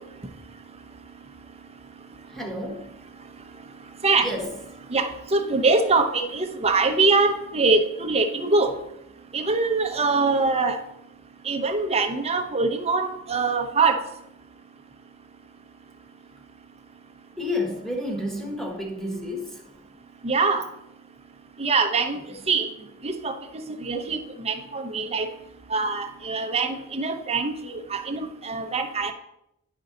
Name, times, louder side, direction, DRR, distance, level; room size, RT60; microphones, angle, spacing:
voice 1, 2.3-2.9 4.2-4.5 17.4-19.6, left 1 dB, ahead, 1.3 m, -30 dB
voice 2, 4.9-8.7 9.3-10.8 11.5-14.0 20.2-20.6 21.6-22.2 22.5-22.7 23.0-23.3 23.8-24.2 24.4-25.3 25.7-29.1, right 3 dB, 30° right, 0.8 m, -23 dB
10.5 x 5.3 x 3.8 m
head